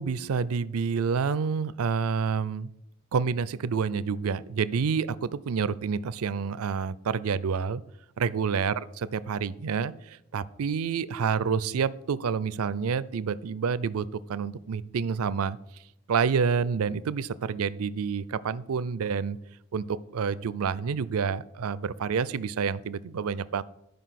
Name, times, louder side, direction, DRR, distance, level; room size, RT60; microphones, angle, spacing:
voice 1, 0.0-2.7 3.1-7.8 8.2-15.6 16.1-19.4 19.7-23.6, right 6 dB, 80° right, 17 dB, 0.4 m, -28 dB
11.0 x 5.3 x 5.8 m, 0.80 s
head